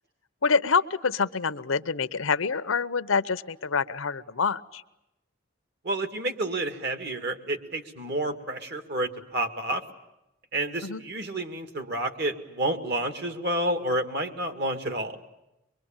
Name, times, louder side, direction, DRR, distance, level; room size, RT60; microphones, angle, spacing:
voice 1, 0.4-4.8 10.8-11.0, left 5 dB, 90° left, 14 dB, 0.8 m, -26 dB
voice 2, 5.8-9.8 10.5-15.2, right 1 dB, 55° right, 7 dB, 2.1 m, -30 dB
24.0 x 23.0 x 8.9 m, 0.89 s
head